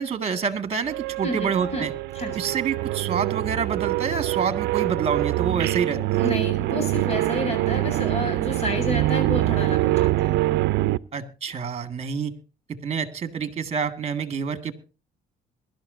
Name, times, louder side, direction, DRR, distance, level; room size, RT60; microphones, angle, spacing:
voice 1, 0.0-1.9 2.3-6.3 11.1-12.3 12.7-14.7, right 6 dB, 40° right, 9 dB, 1.9 m, -27 dB
sound 1, 0.9-11.0, right 17 dB, 80° right, 0.6 m, -24 dB
voice 2, 1.2-1.9 2.1-2.4 6.2-10.4, left 2 dB, 40° left, 6 dB, 7.9 m, -30 dB
22.5 x 12.0 x 2.6 m, 0.33 s
cardioid pair, 110°, 17 cm